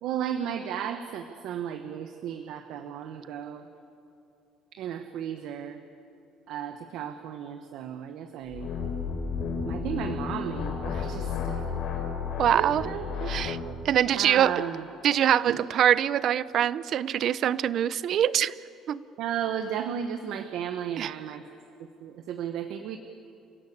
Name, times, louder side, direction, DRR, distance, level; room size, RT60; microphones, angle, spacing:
voice 1, 0.0-3.7 4.7-5.8 6.5-8.7 9.7-11.6 12.5-13.3 14.1-14.9 15.5-15.6 19.2-21.4 21.8-23.0, right 9 dB, 65° right, 8 dB, 1.1 m, -34 dB
sound 1, 8.5-13.7, left 5 dB, 55° left, 3.5 m, -32 dB
voice 2, 12.4-12.9 13.3-13.6 13.8-14.5 15.0-18.5 18.9-19.0 21.0-21.1, right 10 dB, 45° right, 18 dB, 0.5 m, -24 dB
29.0 x 16.0 x 8.6 m, 2.8 s
cardioid pair, 175°, 0 cm